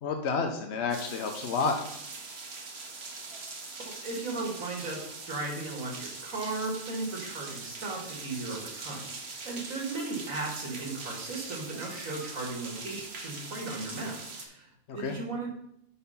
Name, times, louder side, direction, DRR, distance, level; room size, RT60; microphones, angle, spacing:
voice 1, 0.0-1.8 14.9-15.1, left 4 dB, 60° left, 4 dB, 1.0 m, -30 dB
sound 1, 0.9-14.4, right 3 dB, 55° right, 1.4 m, -42 dB
voice 2, 3.9-5.0 5.3-15.5, right 3 dB, 80° right, 1 dB, 2.2 m, -36 dB
9.2 x 4.3 x 5.5 m, 0.76 s
omnidirectional pair, 1.4 m